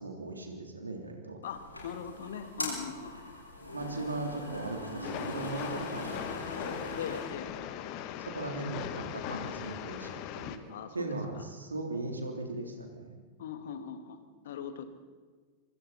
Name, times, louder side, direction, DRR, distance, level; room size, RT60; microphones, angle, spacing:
voice 1, 0.0-1.4 3.7-6.8 8.2-10.6 10.9-13.2, right 2 dB, 80° right, 3 dB, 3.5 m, -38 dB
sound 1, 1.4-7.2, left 1 dB, 85° left, 6.3 m, -41 dB
voice 2, 1.4-3.4 7.0-7.6 10.7-11.4 13.4-14.8, left 7 dB, 60° left, 9 dB, 2.0 m, -41 dB
Train, 5.0-10.6, left 11 dB, 45° left, 1.5 m, -39 dB
sound 2, 6.1-10.8, left 1 dB, 5° left, 6.3 m, -59 dB
25.5 x 25.0 x 4.4 m, 1.5 s
figure-of-eight pair, 90°, 0 cm